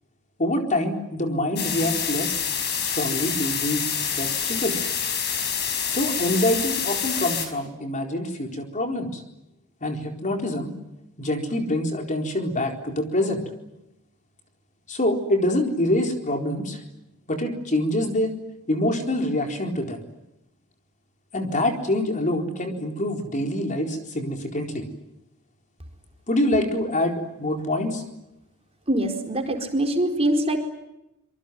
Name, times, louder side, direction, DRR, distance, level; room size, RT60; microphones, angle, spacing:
voice 1, 0.4-2.4 2.8-4.8 5.9-9.2 9.8-10.7 11.2-13.4 14.9-16.8 17.3-18.3 18.7-20.0 21.3-24.8 26.3-28.0, left 1 dB, 35° left, 3 dB, 4.2 m, -25 dB
sound 1, 1.6-7.5, left 7 dB, 50° left, 5.1 m, -27 dB
voice 2, 28.9-30.6, right 1 dB, 30° right, 4 dB, 4.4 m, -23 dB
26.5 x 24.0 x 9.4 m, 0.89 s
head